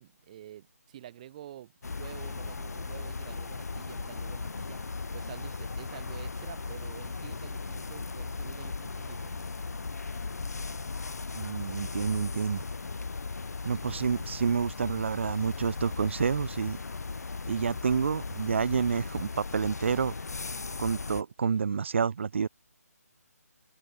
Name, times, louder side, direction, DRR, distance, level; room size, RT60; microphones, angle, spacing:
voice 1, 0.0-1.7 2.0-9.5, right 12 dB, 25° right, 1.3 m, -48 dB
sound 1, 1.8-21.2, left 4 dB, 80° left, 0.4 m, -37 dB
voice 2, 11.3-12.6 13.6-16.8 17.5-20.1 20.8-22.5, right 6 dB, 45° right, 1.3 m, -29 dB
open air
figure-of-eight pair, 150°, 9 cm